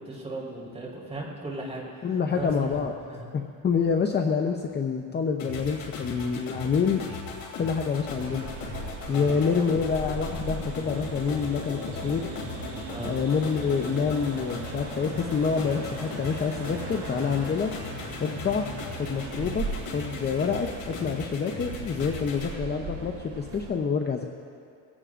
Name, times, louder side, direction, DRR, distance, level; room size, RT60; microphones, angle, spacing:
voice 1, 0.0-2.8 3.1-3.2 9.1-9.4 12.9-13.1, right 2 dB, 15° right, -4 dB, 4.0 m, -37 dB
voice 2, 2.0-2.9 3.3-7.0 7.6-8.5 9.1-12.3 13.0-17.7 18.2-19.6 19.9-24.2, left 6 dB, 25° left, 4 dB, 0.7 m, -27 dB
sound 1, 5.4-22.5, left 3 dB, 60° left, 2.7 m, -38 dB
sound 2, 8.1-23.7, right 3 dB, 35° right, 2.6 m, -38 dB
22.5 x 17.0 x 2.5 m, 2.4 s
cardioid pair, 125°, 38 cm